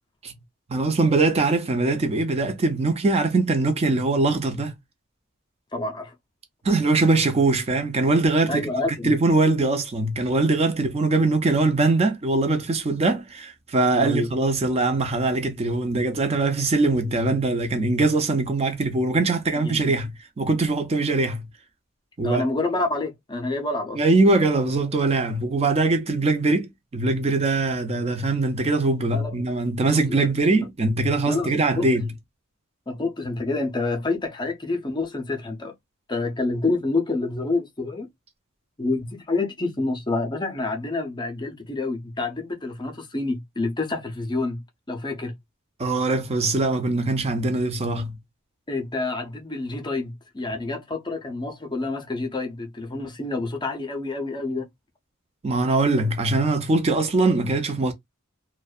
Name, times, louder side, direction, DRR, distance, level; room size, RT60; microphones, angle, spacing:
voice 1, 0.7-4.7 6.6-8.7 9.0-21.5 22.2-22.4 24.0-32.1 45.8-48.2 55.4-57.9, right 3 dB, 30° right, 0.5 m, -22 dB
voice 2, 5.7-6.1 8.5-9.1 14.0-14.3 19.6-19.9 22.2-24.0 29.1-29.3 29.9-30.0 31.3-31.9 32.9-35.7 36.1-38.1 38.8-45.4 48.7-54.7, left 2 dB, 20° left, 0.5 m, -28 dB
2.5 x 2.1 x 2.2 m
head